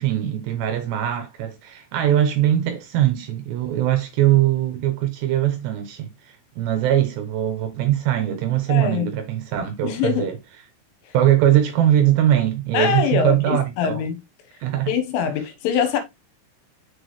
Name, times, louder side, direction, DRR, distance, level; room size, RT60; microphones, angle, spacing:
voice 1, 0.0-6.1 6.6-10.4 11.1-14.0 14.6-14.9, right 12 dB, 75° right, 2.8 m, -21 dB
voice 2, 8.7-9.1 9.8-10.3 12.7-14.2 14.9-16.0, left 7 dB, 75° left, 3.7 m, -23 dB
6.8 x 6.1 x 3.2 m
omnidirectional pair, 5.8 m